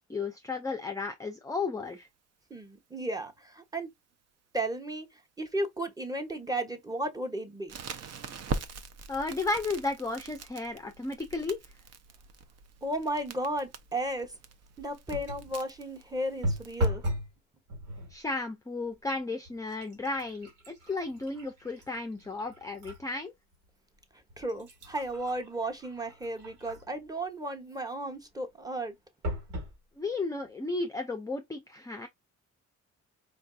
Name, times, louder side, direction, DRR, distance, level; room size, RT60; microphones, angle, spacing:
voice 1, 0.1-2.1 9.1-11.6 18.1-23.3 30.0-32.1, left 3 dB, 10° left, 0.5 m, -34 dB
voice 2, 2.5-3.9 4.5-7.8 12.8-14.3 14.8-17.0 24.4-29.0, right 1 dB, 10° right, 0.9 m, -34 dB
Crackle, 7.7-16.9, right 4 dB, 55° right, 0.7 m, -42 dB
sound 1, 15.1-15.5 16.4-17.3 17.7-18.2 18.9-19.1 19.5-23.0 23.5-23.6 24.3-27.0 29.2-29.8 30.4-30.5 30.8-30.9, equal, 85° right, 2.3 m, -36 dB
4.6 x 2.5 x 2.4 m
cardioid pair, 90°, 30 cm